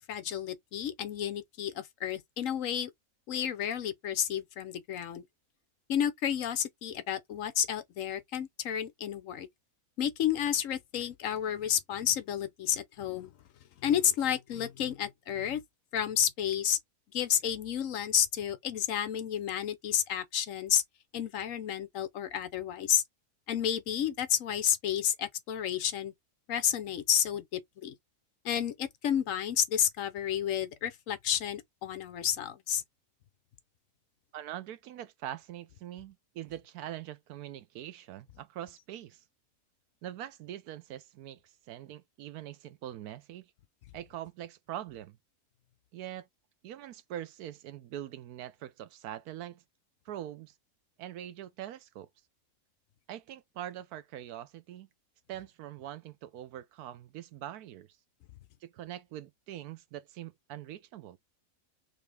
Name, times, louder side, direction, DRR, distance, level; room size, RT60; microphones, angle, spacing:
voice 1, 0.1-2.9 3.3-5.2 5.9-9.5 10.0-13.3 13.8-15.6 15.9-16.8 17.1-20.8 21.1-23.0 23.5-26.1 26.5-27.9 28.4-32.8, left 9 dB, 65° left, 1.0 m, -31 dB
voice 2, 34.3-39.2 40.0-43.5 43.9-45.2 45.9-46.3 46.6-49.6 50.1-50.5 51.0-52.1 53.1-54.9 55.3-57.9 58.6-61.2, right 12 dB, 90° right, 1.2 m, -43 dB
4.0 x 3.2 x 3.3 m
omnidirectional pair, 1.6 m